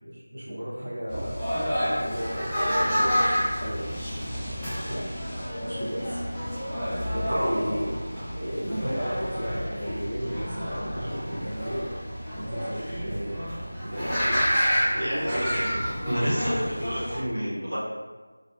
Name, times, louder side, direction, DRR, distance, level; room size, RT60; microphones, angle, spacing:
voice 1, 0.0-1.4 2.0-3.9 4.8-5.1 5.6-6.2 6.9-7.9 8.4-12.0 12.3-13.4 13.8-14.4 14.9-16.0, equal, 40° right, -11 dB, 0.6 m, -34 dB
sound 1, 1.1-17.2, equal, ahead, 0.3 m, -29 dB
voice 2, 15.0-15.5 16.0-17.8, equal, 75° right, -7 dB, 1.1 m, -30 dB
3.2 x 2.4 x 2.3 m, 1.3 s
figure-of-eight pair, 175°, 0 cm